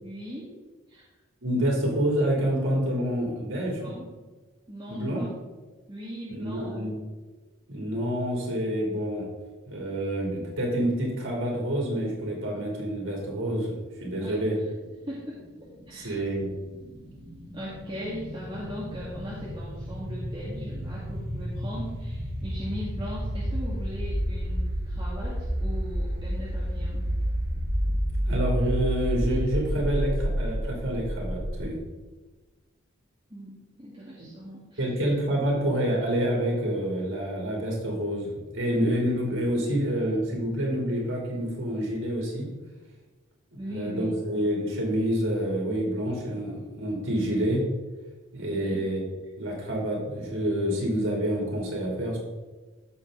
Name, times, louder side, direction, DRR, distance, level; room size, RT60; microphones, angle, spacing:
voice 1, 0.0-0.5 0.9-1.0 3.7-4.1 4.7-5.3 5.9-7.1 14.2-14.3 15.1-16.2 17.5-27.0 33.3-34.9 43.6-44.2 48.5-48.8, equal, 20° right, -8 dB, 2.1 m, -39 dB
voice 2, 1.4-3.9 4.9-5.3 6.3-6.9 7.7-9.3 9.7-13.7 14.0-14.6 15.9-16.5 28.3-31.8 34.2-34.3 34.8-42.5 43.5-47.6 48.3-49.0 49.4-52.2, equal, 80° right, -2 dB, 3.3 m, -28 dB
sound 1, 15.7-31.6, equal, 50° right, 1.7 m, -30 dB
15.0 x 5.6 x 3.9 m, 1.3 s
head